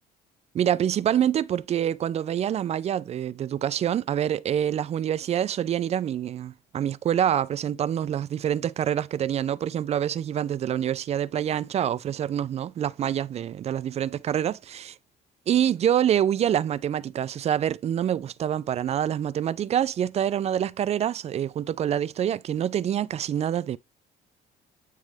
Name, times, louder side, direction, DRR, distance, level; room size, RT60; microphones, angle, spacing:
voice 1, 0.5-15.0 15.5-23.8, right 10 dB, 40° right, 0.4 m, -26 dB
9.2 x 3.2 x 3.4 m
cardioid pair, 110°, 17 cm